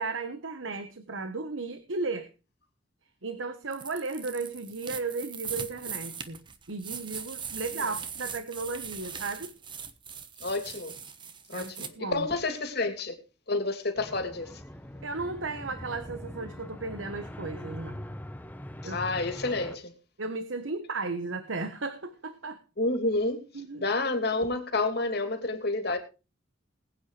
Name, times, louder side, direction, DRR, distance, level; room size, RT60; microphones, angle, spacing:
voice 1, 0.0-2.3 3.2-9.5 11.5-12.3 15.0-18.1 18.8-19.0 20.2-22.6 23.5-23.8, right 3 dB, 80° right, 1.2 m, -35 dB
sound 1, 3.7-11.9, right 6 dB, 25° right, 1.1 m, -40 dB
voice 2, 10.4-10.9 11.5-13.2 13.5-14.5 18.8-19.9 22.8-23.4 23.8-26.0, left 2 dB, 55° left, 2.9 m, -29 dB
sound 2, 13.9-19.8, equal, 10° left, 1.0 m, -42 dB
21.0 x 9.0 x 3.3 m
head